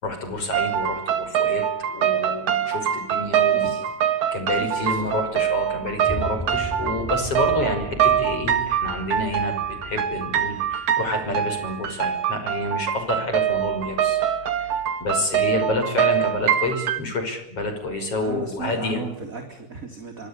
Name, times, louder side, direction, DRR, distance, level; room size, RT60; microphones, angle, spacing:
voice 1, 0.0-3.7 4.3-14.2 14.5-19.0, left 2 dB, 50° left, 7 dB, 6.6 m, -28 dB
sound 1, 0.5-17.0, right 9 dB, 75° right, 3.4 m, -24 dB
voice 2, 3.5-3.8 4.5-5.2 15.5-15.7 18.2-20.3, right 4 dB, 25° right, 4 dB, 3.6 m, -36 dB
sound 2, 6.0-12.2, equal, 5° left, 0.7 m, -37 dB
26.5 x 25.0 x 8.4 m, 0.72 s
omnidirectional pair, 3.4 m